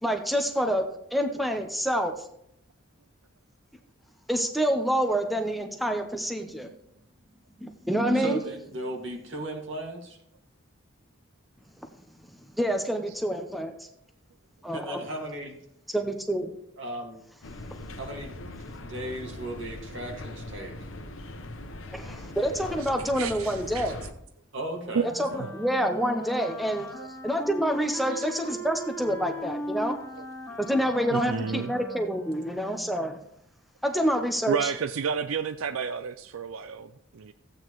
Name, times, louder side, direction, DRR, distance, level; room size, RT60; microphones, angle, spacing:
voice 1, 0.0-0.8 1.1-2.3 4.3-6.7 7.6-8.4 12.5-13.7 14.6-15.0 15.9-16.5 21.9-24.0 25.1-26.9 27.2-30.0 30.6-33.2 33.8-34.7, equal, ahead, 5 dB, 0.7 m, -27 dB
voice 2, 8.1-10.2 14.7-15.5 16.8-17.2 18.0-20.7 24.5-25.6, right 1 dB, 65° right, 1 dB, 2.1 m, -36 dB
sound 1, 17.4-24.1, left 1 dB, 70° left, 1.0 m, -41 dB
voice 3, 23.2-23.9 24.9-25.1 27.0-27.1 28.1-28.2 30.2-30.3 31.1-31.7 34.5-37.3, right 6 dB, 90° right, 10 dB, 0.5 m, -31 dB
Wind instrument woodwind instrument, 24.8-33.0, equal, 15° left, 1.2 m, -38 dB
14.5 x 8.7 x 3.1 m, 0.74 s
head